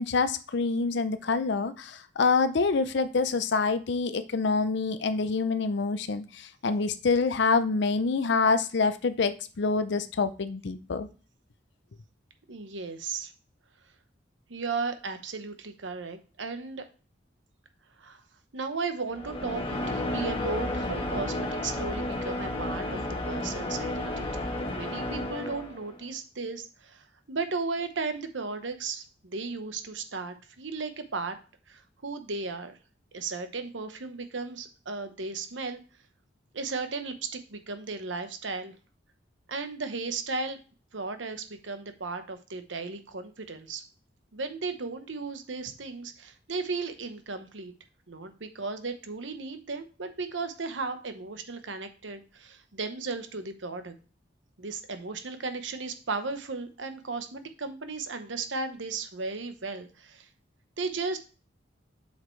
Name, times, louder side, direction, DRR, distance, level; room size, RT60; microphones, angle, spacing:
voice 1, 0.0-11.1, left 4 dB, 65° left, 12 dB, 0.6 m, -26 dB
voice 2, 12.5-13.3 14.5-16.9 18.0-18.2 18.5-23.0 23.3-31.4 31.7-32.8 33.1-35.8 36.5-38.7 39.5-40.6 40.9-43.8 44.3-47.7 48.1-53.9 54.6-60.3 60.8-61.2, right 4 dB, 90° right, 8 dB, 1.0 m, -35 dB
sound 1, 19.1-26.0, left 1 dB, 30° left, 1.3 m, -32 dB
7.7 x 5.8 x 3.2 m, 0.37 s
head